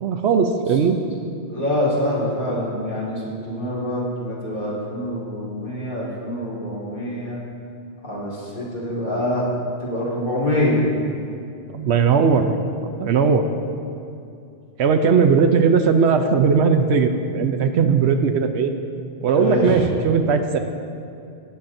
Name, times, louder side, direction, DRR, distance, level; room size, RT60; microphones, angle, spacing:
voice 1, 0.0-1.0 11.7-12.6 13.0-13.5 14.8-18.7 19.2-20.6, right 5 dB, 75° right, 7 dB, 0.8 m, -18 dB
voice 2, 1.5-7.4 8.0-9.5 9.8-10.8 19.3-19.8, left 1 dB, 40° left, -7 dB, 2.3 m, -25 dB
18.5 x 7.3 x 2.6 m, 2.5 s
omnidirectional pair, 1.2 m